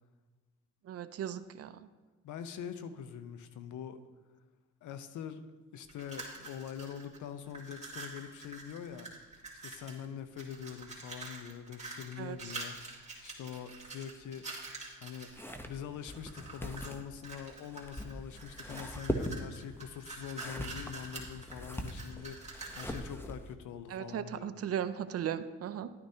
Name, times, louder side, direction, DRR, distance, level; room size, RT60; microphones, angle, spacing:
voice 1, 0.8-1.9 12.2-12.5 23.9-25.9, right 9 dB, 50° right, 12 dB, 0.5 m, -37 dB
voice 2, 2.2-4.0 4.8-5.4 5.7-9.1 9.6-14.4 14.7-15.3 15.7-24.5, left 8 dB, 75° left, 10 dB, 0.7 m, -44 dB
sound 1, 5.9-7.2 7.5-10.0 10.4-15.5 16.1-16.9 17.2-23.1, right 3 dB, 20° right, 2.5 m, -46 dB
sound 2, 15.3-23.5, equal, 5° left, 0.8 m, -41 dB
11.0 x 9.6 x 2.8 m, 1.2 s
cardioid pair, 90°, 30 cm